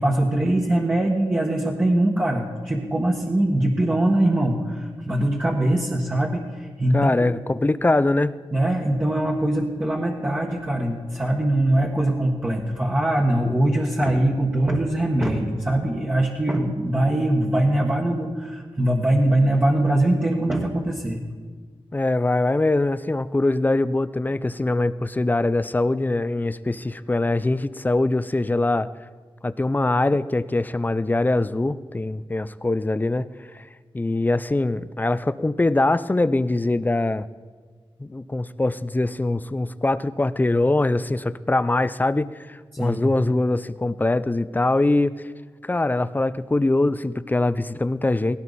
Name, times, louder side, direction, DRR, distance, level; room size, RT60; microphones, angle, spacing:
voice 1, 0.0-7.3 8.5-21.2 42.7-43.0, right 1 dB, 20° right, -3 dB, 1.6 m, -22 dB
voice 2, 6.9-8.4 21.9-28.9 29.4-33.3 33.5-33.7 33.9-37.3 38.0-45.3 45.6-48.4, left 2 dB, 20° left, 15 dB, 0.5 m, -23 dB
18.5 x 17.0 x 4.2 m, 1.5 s
wide cardioid pair, 115°, 10 cm